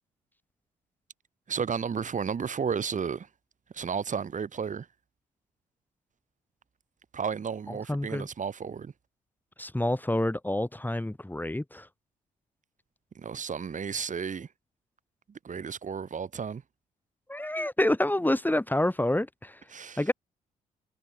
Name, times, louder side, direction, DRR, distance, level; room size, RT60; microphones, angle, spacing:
voice 1, 1.5-3.3 3.7-4.9 7.1-8.9 13.1-14.5 15.3-16.6 19.7-20.1, right 6 dB, 45° right, 4.2 m, -33 dB
voice 2, 7.9-8.3 9.6-11.9 17.3-19.6 20.0-20.1, left 1 dB, 10° left, 7.4 m, -28 dB
hypercardioid pair, 45°, 18 cm